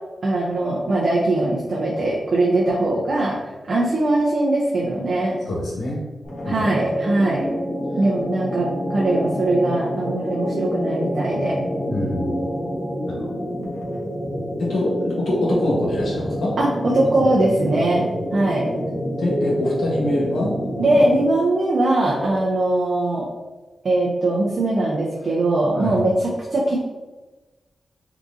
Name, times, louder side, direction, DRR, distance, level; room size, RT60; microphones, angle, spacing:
voice 1, 0.2-3.4 3.7-5.4 6.5-7.5 8.0-11.6 16.6-18.1 18.3-18.7 20.8-23.3 23.8-26.8, right 2 dB, 60° right, -5 dB, 0.6 m, -21 dB
voice 2, 5.5-6.0 6.4-6.6 11.9-12.4 13.1-13.3 14.2-16.6 19.2-20.5 22.2-22.3 25.7-26.0, left 1 dB, 80° left, -4 dB, 1.1 m, -24 dB
sound 1, 6.2-21.4, equal, 60° left, 1.2 m, -27 dB
3.6 x 2.9 x 2.6 m, 1.2 s
cardioid pair, 70°, 0 cm